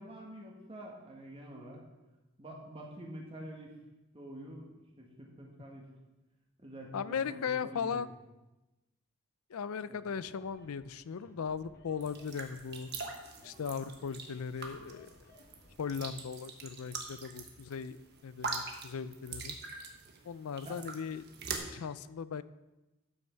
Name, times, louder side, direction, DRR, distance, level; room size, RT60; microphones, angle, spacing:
voice 1, 0.0-1.8 2.4-3.7 4.1-4.7 5.0-5.9 6.6-8.1 9.9-10.0 20.6-20.8, right 1 dB, 25° right, -1 dB, 1.6 m, -47 dB
voice 2, 6.9-8.1 9.5-12.9 13.4-15.1 15.8-18.0 18.2-19.6 20.3-21.2 21.7-22.4, left 6 dB, 80° left, 15 dB, 0.4 m, -38 dB
sound 1, 10.1-16.1, left 1 dB, 45° left, 1.2 m, -60 dB
sound 2, 12.0-21.6, right 4 dB, 50° right, 1.2 m, -43 dB
12.0 x 6.1 x 4.5 m, 1.0 s
head